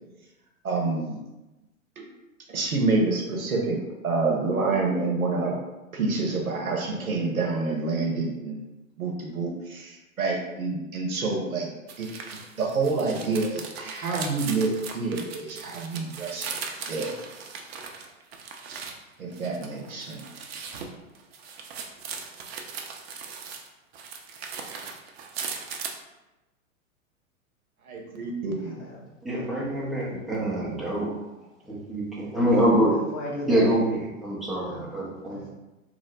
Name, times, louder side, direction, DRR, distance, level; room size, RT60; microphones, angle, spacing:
voice 1, 0.6-1.2 2.0-2.1 2.5-5.6 5.9-8.6 9.0-11.7 12.0-12.1 12.6-16.5 16.9-17.1 19.2-20.2 27.9-28.7, right 3 dB, 85° right, 0 dB, 0.8 m, -27 dB
sound 1, 11.9-19.0 19.3-23.7 23.9-26.0, right 6 dB, 50° right, 0.5 m, -38 dB
voice 2, 28.6-29.1 29.4-29.5 29.7-29.9 32.9-33.8 34.7-34.8 35.3-35.5, left 1 dB, 60° left, -5 dB, 1.4 m, -36 dB
voice 3, 29.2-31.1 31.7-32.9 33.5-35.4, right 1 dB, ahead, -7 dB, 0.5 m, -25 dB
3.0 x 2.1 x 3.9 m, 1.0 s
figure-of-eight pair, 105°, 41 cm